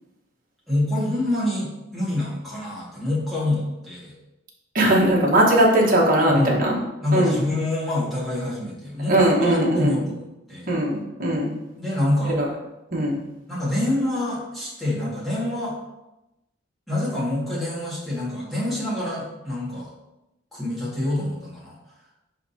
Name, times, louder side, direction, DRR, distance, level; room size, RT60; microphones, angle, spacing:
voice 1, 0.7-4.1 6.3-6.6 7.0-10.2 10.5-10.7 11.8-12.4 13.5-15.8 16.9-19.9 20.5-21.8, left 1 dB, ahead, -8 dB, 2.1 m, -26 dB
voice 2, 4.7-6.8 7.1-7.4 9.1-10.0 10.7-11.5 12.4-12.5 12.9-13.2, right 1 dB, 45° right, -3 dB, 1.5 m, -19 dB
10.0 x 3.6 x 2.9 m, 0.95 s
head